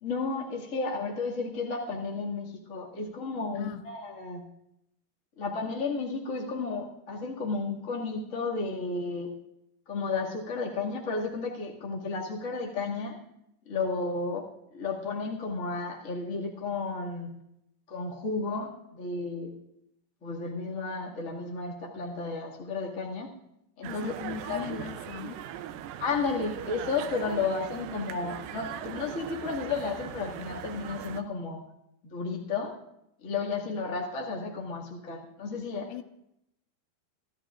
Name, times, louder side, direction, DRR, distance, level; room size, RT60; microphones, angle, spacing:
voice 1, 0.0-4.4 5.4-9.3 9.9-13.2 13.6-17.3 17.9-19.5 20.2-23.3 23.8-24.1 24.5-24.6 26.0-31.6 32.0-32.7 33.2-35.9, left 4 dB, 30° left, -3 dB, 1.5 m, -33 dB
sound 1, 23.8-31.2, right 11 dB, 80° right, 2.1 m, -40 dB
voice 2, 23.9-25.4 35.9-36.0, left 10 dB, 85° left, 8 dB, 2.7 m, -39 dB
27.0 x 13.0 x 2.5 m, 0.82 s
omnidirectional pair, 4.6 m